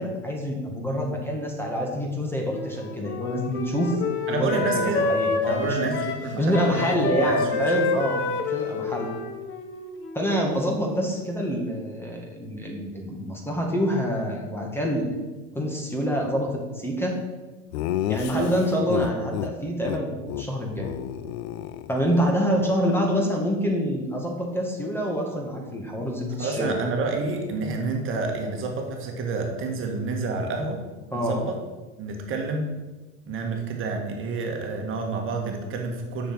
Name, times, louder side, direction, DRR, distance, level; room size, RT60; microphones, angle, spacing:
voice 1, 0.0-4.0 4.3-5.9 6.4-8.2 8.5-9.1 10.1-15.2 15.5-17.2 18.1-21.0 21.9-26.8 31.1-31.4, equal, 5° left, 0 dB, 1.9 m, -26 dB
Wind instrument woodwind instrument, 2.5-10.5, left 3 dB, 35° left, 1.4 m, -28 dB
voice 2, 4.3-5.1 5.5-7.9 18.3-18.5 26.4-30.8 31.1-31.6 32.0-32.7 33.3-36.3, right 3 dB, 40° right, 2 dB, 1.9 m, -29 dB
Laughter, 17.7-19.5 19.8-20.0 20.3-20.5 20.7-22.3, left 12 dB, 80° left, 0.7 m, -30 dB
7.0 x 6.6 x 7.6 m, 1.2 s
supercardioid pair, 125°, 32 cm